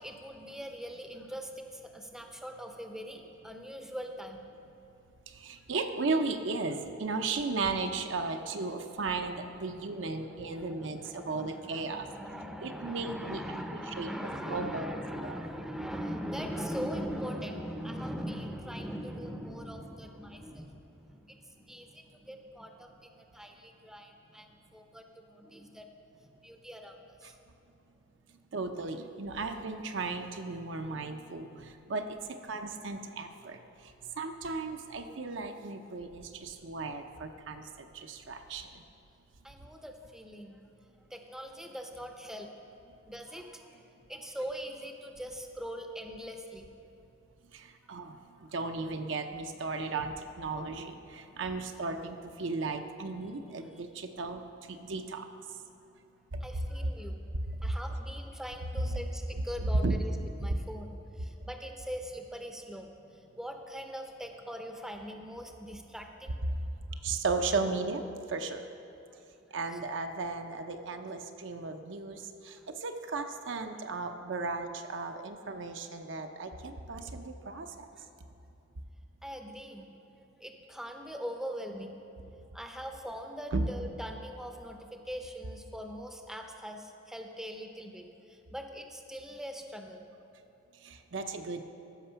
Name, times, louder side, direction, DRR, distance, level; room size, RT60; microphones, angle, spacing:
voice 1, 0.0-4.5 9.7-25.9 26.3-27.3 39.4-40.6 41.1-42.5 43.1-43.8 44.1-46.7 53.6-53.8 56.4-57.2 57.6-60.1 60.4-66.3 69.1-69.2 72.5-72.6 78.0-78.1 79.2-79.9 80.4-82.0 82.5-90.0, equal, 5° right, 4 dB, 0.6 m, -41 dB
voice 2, 5.3-12.1 12.6-13.4 14.0-14.1 14.5-15.4 27.2-27.3 28.5-32.2 32.4-33.6 34.2-38.7 47.5-48.2 48.5-54.4 54.7-55.3 56.3-56.4 56.8-56.9 58.8-58.9 59.8-60.0 67.0-68.6 69.5-77.9 83.5-83.6 90.8-91.6, right 3 dB, 70° right, 6 dB, 0.6 m, -35 dB
14.5 x 6.0 x 5.6 m, 2.8 s
head